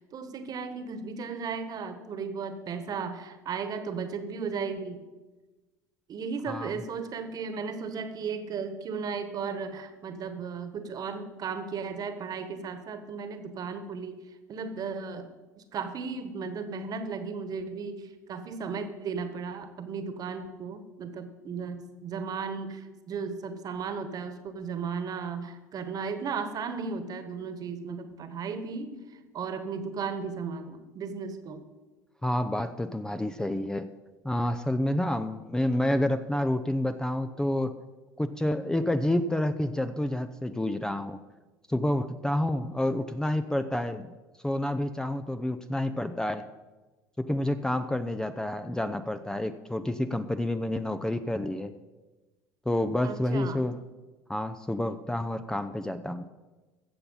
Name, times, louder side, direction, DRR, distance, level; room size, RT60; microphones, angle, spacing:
voice 1, 0.0-5.0 6.1-14.2 14.5-15.3 15.7-31.6 53.0-53.6, right 5 dB, 40° right, 10 dB, 1.4 m, -35 dB
voice 2, 32.2-33.9 34.2-37.7 38.2-41.2 41.7-44.1 44.4-46.4 47.2-51.7 52.7-53.8 54.3-56.3, left 1 dB, 5° left, 10 dB, 0.6 m, -29 dB
15.5 x 6.9 x 5.6 m, 1.2 s
hypercardioid pair, 70°, 9 cm